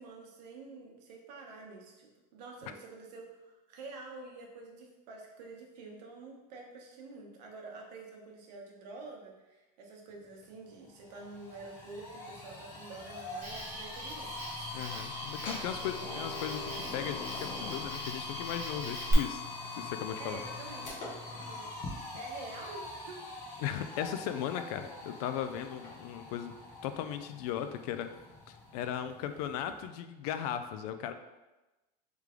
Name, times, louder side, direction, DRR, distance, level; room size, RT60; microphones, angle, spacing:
voice 1, 0.0-14.3 15.5-16.1 20.2-21.7 22.1-23.2, right 3 dB, 85° right, 0 dB, 1.0 m, -48 dB
sound 1, 10.4-10.5 10.8-29.9, left 3 dB, 35° left, 1.1 m, -43 dB
Cricket, 13.4-19.1, right 1 dB, 10° right, 0.9 m, -42 dB
voice 2, 14.7-19.4 19.7-20.4 21.2-21.4 23.6-26.5 26.8-28.1 28.5-31.1, left 9 dB, 70° left, 9 dB, 0.4 m, -37 dB
3.3 x 3.2 x 3.6 m, 1.1 s
supercardioid pair, 160°, 21 cm